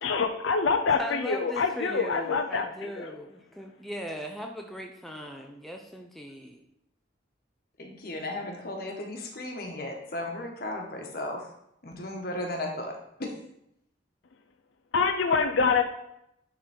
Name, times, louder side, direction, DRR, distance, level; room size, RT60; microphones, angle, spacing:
voice 1, 0.0-3.2 14.9-15.8, left 5 dB, 75° left, 5 dB, 0.5 m, -26 dB
voice 2, 1.0-6.6, equal, ahead, 2 dB, 0.5 m, -38 dB
voice 3, 7.8-11.5 11.8-13.3, left 1 dB, 50° left, 1 dB, 1.4 m, -35 dB
10.0 x 4.0 x 4.3 m, 0.78 s
head